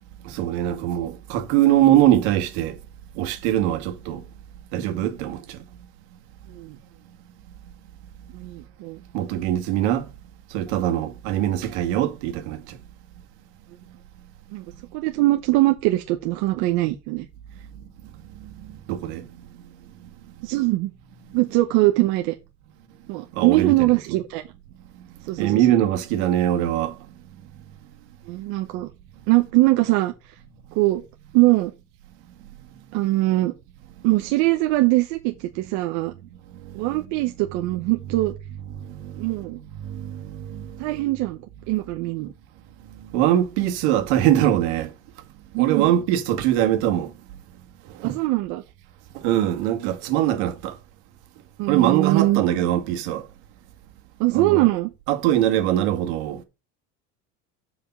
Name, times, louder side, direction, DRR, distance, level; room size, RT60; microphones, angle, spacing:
voice 1, 0.2-2.8 3.1-4.2 4.7-5.6 9.1-10.1 10.5-12.8 18.4-19.6 21.3-21.4 23.3-23.7 24.1-24.2 25.3-27.0 36.5-36.9 38.8-39.3 39.8-40.9 42.9-44.9 45.6-47.1 47.9-48.1 49.1-50.8 51.7-53.3 54.3-54.7 55.1-56.4, right 12 dB, 80° right, 1.9 m, -22 dB
voice 2, 8.3-9.0 14.5-14.7 14.9-17.3 20.4-20.9 21.3-22.3 23.1-24.4 25.2-25.7 28.3-28.9 29.3-30.4 30.7-31.0 31.3-31.7 32.9-33.5 34.0-36.1 36.7-38.3 39.2-39.6 40.8-42.3 45.5-45.9 48.0-48.6 51.6-52.4 54.2-54.9, right 19 dB, 60° right, 0.9 m, -22 dB
7.3 x 5.2 x 5.5 m
cardioid pair, 165°, 33 cm